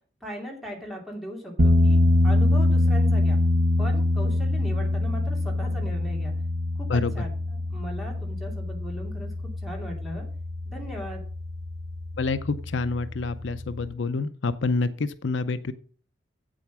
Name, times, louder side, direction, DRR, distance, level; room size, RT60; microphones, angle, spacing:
voice 1, 0.2-2.0 2.2-3.4 3.8-6.3 6.8-7.3 7.7-9.3 9.6-10.3 10.7-11.2, equal, ahead, -1 dB, 2.5 m, -37 dB
sound 1, 1.6-13.9, left 2 dB, 80° right, 1.1 m, -24 dB
voice 2, 12.2-15.7, left 3 dB, 75° left, 12 dB, 0.6 m, -27 dB
8.2 x 7.7 x 6.0 m, 0.43 s
head